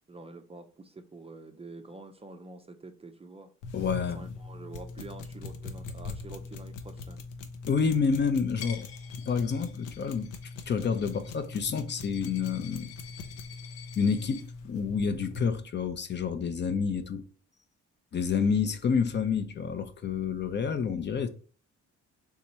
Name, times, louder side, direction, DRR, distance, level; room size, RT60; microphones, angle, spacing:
voice 1, 0.1-3.5 4.0-7.2, right 3 dB, 20° right, 0.4 m, -47 dB
sound 1, 3.6-15.5, left 3 dB, 90° left, 0.6 m, -42 dB
voice 2, 3.7-4.2 7.7-8.9 9.2-10.3 10.7-12.9 14.0-17.2 18.1-21.3, left 6 dB, 35° left, 0.5 m, -28 dB
Coin (dropping), 8.6-14.4, left 8 dB, 55° left, 1.3 m, -49 dB
3.5 x 2.8 x 4.2 m
cardioid pair, 90°, 30 cm